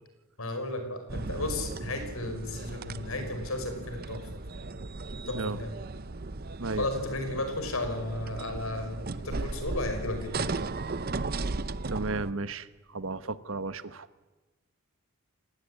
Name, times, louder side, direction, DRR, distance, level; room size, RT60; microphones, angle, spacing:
voice 1, 0.4-4.4 5.3-5.7 6.7-10.6, left 2 dB, 75° left, 7 dB, 5.4 m, -34 dB
sound 1, 1.1-12.3, right 3 dB, 45° right, 0.8 m, -36 dB
voice 2, 11.9-12.7 12.9-14.1, right 3 dB, 65° right, 13 dB, 1.2 m, -33 dB
29.5 x 18.0 x 9.9 m, 1.2 s
head